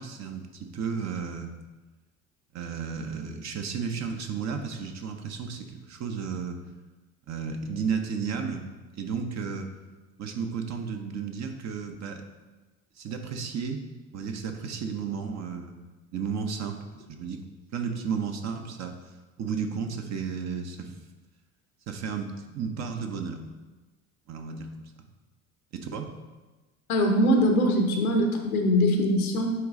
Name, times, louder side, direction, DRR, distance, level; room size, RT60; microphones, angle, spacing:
voice 1, 0.0-1.5 2.5-6.6 7.3-8.7 8.9-9.7 10.2-12.2 13.0-13.8 14.1-15.7 16.1-16.8 17.1-17.5 17.7-18.9 19.4-20.9 21.9-23.4 24.3-24.7 25.7-26.1, right 6 dB, 40° right, 5 dB, 0.9 m, -33 dB
voice 2, 26.9-29.5, equal, 80° left, 3 dB, 0.9 m, -22 dB
9.2 x 3.1 x 3.7 m, 1.2 s
figure-of-eight pair, 60°, 43 cm